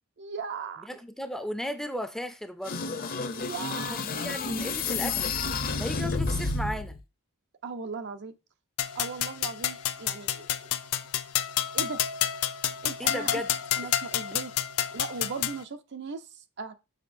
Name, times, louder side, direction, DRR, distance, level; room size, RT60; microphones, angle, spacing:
voice 1, 0.2-0.9 3.3-4.0 7.6-8.3 8.9-10.7 11.7-12.0 12.8-13.4 13.8-14.5 14.9-16.2 16.6-16.7, right 5 dB, 50° right, 0.6 m, -38 dB
voice 2, 0.8-2.9 3.9-5.4 5.8-7.0 13.0-13.5, equal, ahead, 0.5 m, -36 dB
sound 1, 2.6-7.0, left 4 dB, 40° left, 0.7 m, -30 dB
sound 2, 8.8-15.6, left 11 dB, 80° left, 0.6 m, -30 dB
6.5 x 5.7 x 2.6 m
head